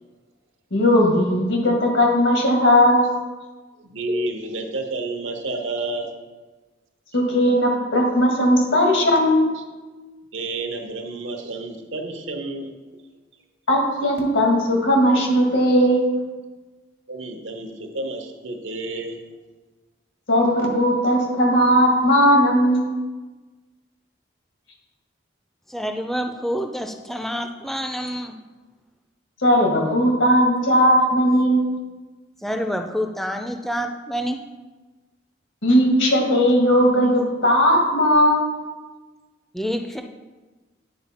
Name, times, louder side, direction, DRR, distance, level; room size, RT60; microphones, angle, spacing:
voice 1, 0.7-3.1 7.1-9.6 13.7-16.2 20.3-23.0 29.4-31.7 35.6-38.5, equal, 90° left, 0 dB, 1.8 m, -18 dB
voice 2, 3.8-6.1 7.1-7.2 10.3-12.7 17.1-19.2, right 2 dB, 85° right, 4 dB, 0.9 m, -30 dB
voice 3, 25.7-28.3 32.4-34.4 39.5-40.0, equal, ahead, 4 dB, 0.3 m, -27 dB
9.5 x 4.4 x 4.2 m, 1.3 s
head